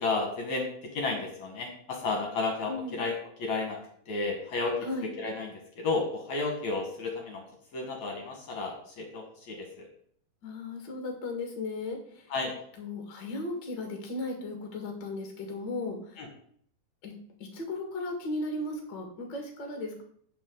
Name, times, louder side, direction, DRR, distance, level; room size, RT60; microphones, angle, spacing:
voice 1, 0.0-3.8 4.1-7.4 7.7-9.9 12.3-12.5 16.2-16.3, left 3 dB, 60° left, 1 dB, 2.4 m, -32 dB
voice 2, 2.7-3.0 4.8-5.1 10.4-12.0 12.8-16.0 17.0-17.1 17.5-20.0, left 2 dB, 40° left, 2 dB, 1.8 m, -35 dB
16.0 x 5.4 x 3.8 m, 0.62 s
omnidirectional pair, 4.4 m